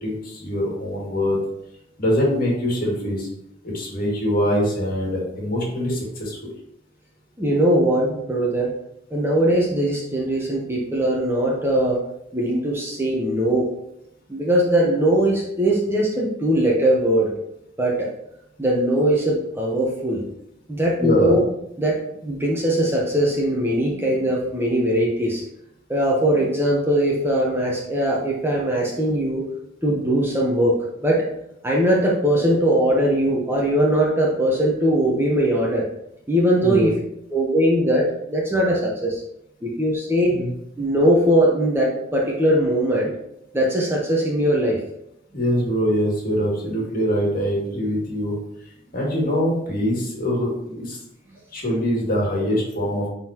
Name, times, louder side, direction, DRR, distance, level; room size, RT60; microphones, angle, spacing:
voice 1, 0.0-1.4 2.0-3.3 3.6-6.5 21.0-21.4 36.6-36.9 40.3-40.5 45.3-48.4 48.9-51.0 51.5-53.1, equal, 50° left, -3 dB, 2.3 m, -23 dB
voice 2, 7.4-8.7 9.1-12.0 12.3-13.7 14.3-17.3 17.8-18.1 18.6-20.2 20.7-21.4 21.8-25.4 25.9-29.4 29.8-30.7 31.0-31.3 31.6-35.9 36.3-36.9 37.3-39.2 39.6-40.3 40.8-43.1 43.5-44.8, right 1 dB, 10° right, -3 dB, 1.0 m, -20 dB
9.8 x 3.9 x 3.0 m, 0.81 s
head